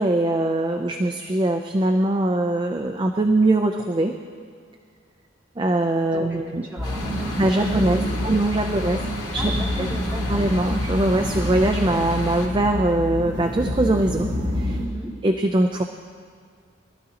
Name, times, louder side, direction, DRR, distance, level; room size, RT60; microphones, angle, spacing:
voice 1, 0.0-4.2 5.6-6.7 7.4-9.0 9.3-9.5 9.8-9.9 10.3-14.7 15.2-15.8, right 1 dB, 25° right, 4 dB, 0.4 m, -22 dB
voice 2, 6.0-8.4 8.6-8.7 9.4-10.4 14.7-15.1, equal, 10° right, -7 dB, 2.6 m, -37 dB
sound 1, 6.8-12.5, left 2 dB, 75° left, 2.8 m, -35 dB
sound 2, 6.8-14.9, left 1 dB, 40° right, 1.8 m, -27 dB
22.5 x 12.5 x 2.9 m, 2.1 s
head